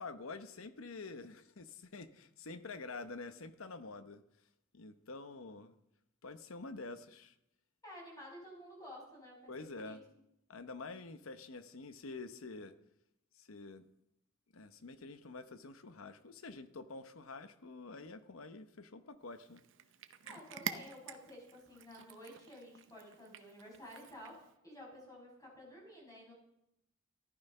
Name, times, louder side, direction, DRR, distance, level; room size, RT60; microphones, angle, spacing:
voice 1, 0.0-4.2 4.7-5.7 6.2-7.3 9.5-10.0 10.5-12.7 13.3-13.8 14.5-19.6, left 3 dB, 80° left, 1.0 m, -47 dB
voice 2, 7.8-10.0 20.2-26.3, equal, 15° left, 6.4 m, -52 dB
Cat, 19.3-24.5, right 8 dB, 60° right, 0.8 m, -48 dB
14.5 x 11.5 x 5.5 m
head